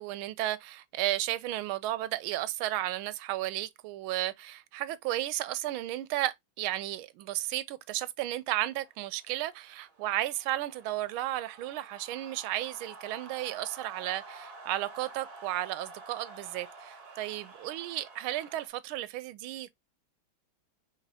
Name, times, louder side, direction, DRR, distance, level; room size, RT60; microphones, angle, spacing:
voice 1, 0.0-19.7, right 14 dB, 90° right, 1.4 m, -34 dB
sound 1, 8.8-18.7, right 3 dB, 55° right, 1.6 m, -50 dB
5.1 x 3.4 x 2.7 m
omnidirectional pair, 2.2 m